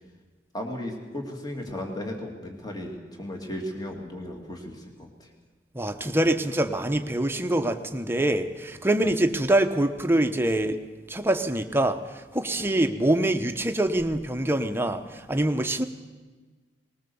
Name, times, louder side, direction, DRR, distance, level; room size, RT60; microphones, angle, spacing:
voice 1, 0.5-5.3 9.0-9.1 12.6-12.7, left 1 dB, 20° left, 2 dB, 2.5 m, -35 dB
voice 2, 5.7-10.8 11.1-12.0 12.3-15.9, right 1 dB, 15° right, 7 dB, 1.0 m, -24 dB
20.0 x 19.5 x 7.1 m, 1.3 s
head